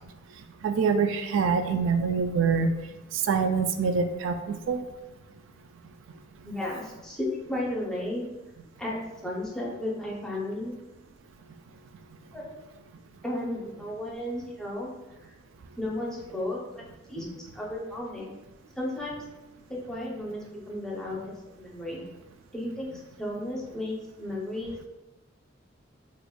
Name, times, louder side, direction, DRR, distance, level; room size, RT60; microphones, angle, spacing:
voice 1, 0.6-2.7 3.3-4.8, right 5 dB, 80° right, 7 dB, 0.3 m, -25 dB
voice 2, 6.4-8.2 8.8-9.0 9.2-10.7 12.3-12.5 13.2-14.9 15.8-16.8 17.1-18.3 18.8-19.2 19.7-22.0 22.5-22.9 23.2-24.9, left 1 dB, 5° left, -4 dB, 0.6 m, -34 dB
4.6 x 2.5 x 2.2 m, 1.0 s
head